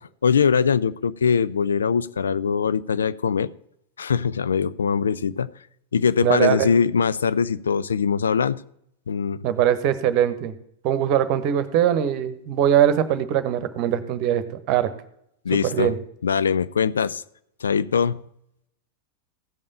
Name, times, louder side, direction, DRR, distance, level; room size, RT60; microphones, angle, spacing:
voice 1, 0.2-3.5 4.0-5.5 5.9-8.6 9.1-9.4 15.4-15.9 16.2-17.2 17.6-18.2, left 6 dB, 70° left, 16 dB, 0.4 m, -22 dB
voice 2, 6.2-6.7 9.4-10.5 10.8-14.9 15.6-16.0, right 10 dB, 40° right, 12 dB, 1.1 m, -21 dB
15.0 x 5.4 x 6.8 m, 0.73 s
figure-of-eight pair, 90°, 0 cm